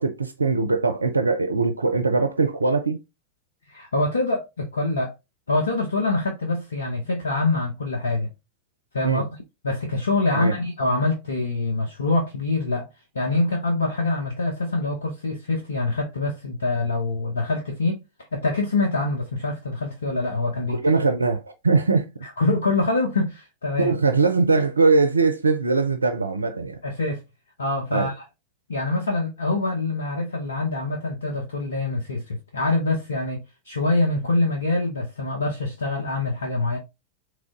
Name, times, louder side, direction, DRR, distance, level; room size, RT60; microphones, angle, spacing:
voice 1, 0.0-3.0 9.0-9.2 10.3-10.6 20.7-22.1 23.8-26.8 27.9-28.1, right 4 dB, 80° right, 0.4 m, -21 dB
voice 2, 3.7-5.1 5.5-8.3 8.9-9.4 9.6-12.9 13.1-18.0 18.3-20.8 22.2-24.0 26.8-27.2 27.6-28.2 28.7-36.8, left 2 dB, 70° left, 0.8 m, -25 dB
3.7 x 3.2 x 3.7 m
figure-of-eight pair, 90°, 0 cm